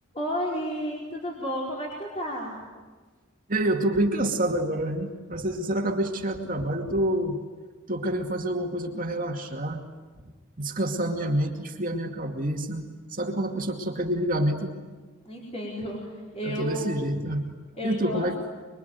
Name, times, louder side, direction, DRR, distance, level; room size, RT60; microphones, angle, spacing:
voice 1, 0.1-2.6 15.2-17.0 17.7-18.4, equal, 30° left, -4 dB, 4.8 m, -32 dB
voice 2, 3.5-7.4 7.9-9.8 10.6-12.8 13.1-14.7 16.4-17.4 17.8-18.3, right 1 dB, 40° right, 2 dB, 2.4 m, -27 dB
26.5 x 22.5 x 9.4 m, 1.4 s
head